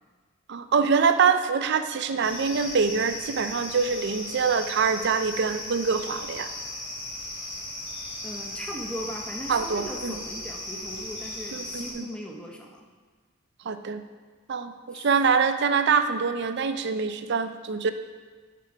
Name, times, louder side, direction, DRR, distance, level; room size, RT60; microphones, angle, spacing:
voice 1, 0.5-6.5 9.5-10.2 11.5-12.1 13.7-14.0 14.5-17.9, right 5 dB, 55° right, 9 dB, 0.4 m, -25 dB
sound 1, 2.2-11.9, left 1 dB, 65° left, 1.8 m, -37 dB
voice 2, 8.2-12.9 14.9-15.1, equal, 5° left, 1 dB, 0.7 m, -38 dB
8.3 x 5.9 x 4.6 m, 1.4 s
head